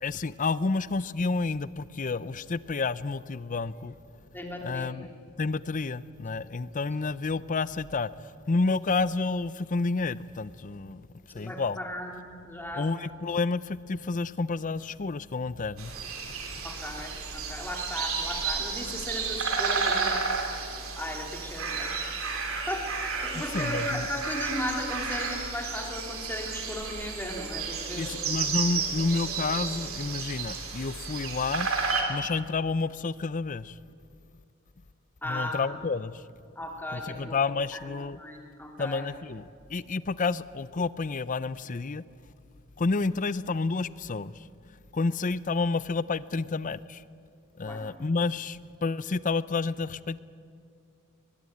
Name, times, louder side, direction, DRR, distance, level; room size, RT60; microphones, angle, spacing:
voice 1, 0.0-3.9 4.6-5.1 5.4-11.8 12.8-15.9 16.6-16.7 23.3-24.0 28.0-31.7 32.1-33.8 35.2-36.2 36.9-38.2 38.8-42.0 42.8-44.4 44.9-47.0 47.6-50.2, left 4 dB, 35° left, 17 dB, 0.5 m, -30 dB
voice 2, 4.3-5.1 11.4-12.9 16.6-20.3 21.0-21.9 22.7-28.1 35.2-35.8 36.6-39.0 47.6-47.8, left 1 dB, 10° left, 1 dB, 2.7 m, -36 dB
sound 1, 15.8-32.0, right 5 dB, 65° right, 3.2 m, -32 dB
22.5 x 20.5 x 8.6 m, 2.3 s
head